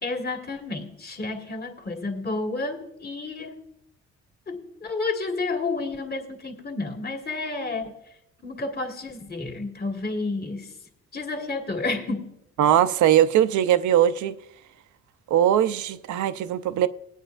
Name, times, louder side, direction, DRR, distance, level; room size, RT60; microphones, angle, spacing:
voice 1, 0.0-3.6 4.5-8.0 8.4-10.8 11.1-12.4, left 3 dB, 30° left, 1.8 m, -31 dB
voice 2, 12.6-14.4 15.3-16.9, right 11 dB, 75° right, 0.6 m, -20 dB
19.0 x 9.1 x 2.5 m
cardioid pair, 90°, 30 cm